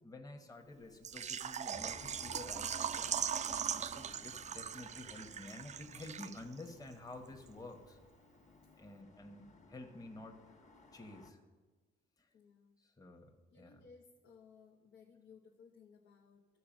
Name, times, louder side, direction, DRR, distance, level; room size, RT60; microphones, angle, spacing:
voice 1, 0.0-3.1 3.4-8.0 8.8-10.5 10.9-11.4 12.2-12.3 12.8-13.8, left 2 dB, 20° left, 4 dB, 1.1 m, -51 dB
Water / Liquid, 1.0-6.7 6.9-7.0 7.5-7.6, right 8 dB, 35° right, 0.4 m, -40 dB
sound 1, 1.7-11.3, left 2 dB, 35° left, 1.5 m, -57 dB
voice 2, 12.3-12.8 13.5-16.5, left 5 dB, 70° left, 0 dB, 0.9 m, -60 dB
12.5 x 4.8 x 7.4 m, 1.3 s
cardioid pair, 90°, 20 cm